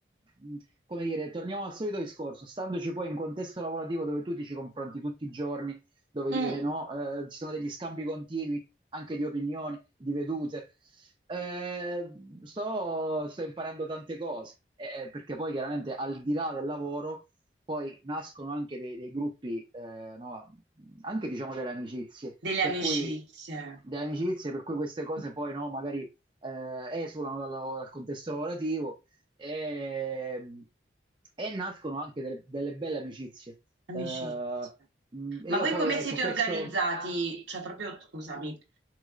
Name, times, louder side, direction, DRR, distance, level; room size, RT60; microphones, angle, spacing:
voice 1, 0.9-5.8 6.1-8.6 8.9-10.7 11.0-14.5 14.8-17.2 17.7-22.4 22.6-23.2 23.8-26.1 26.4-28.9 29.4-30.6 31.4-33.5 33.9-34.8 35.1-36.7, right 2 dB, 25° right, 0.5 m, -34 dB
voice 2, 6.3-6.6 22.4-23.8 33.9-34.3 35.5-38.6, right 3 dB, 75° right, 1.1 m, -31 dB
4.5 x 3.1 x 2.4 m
head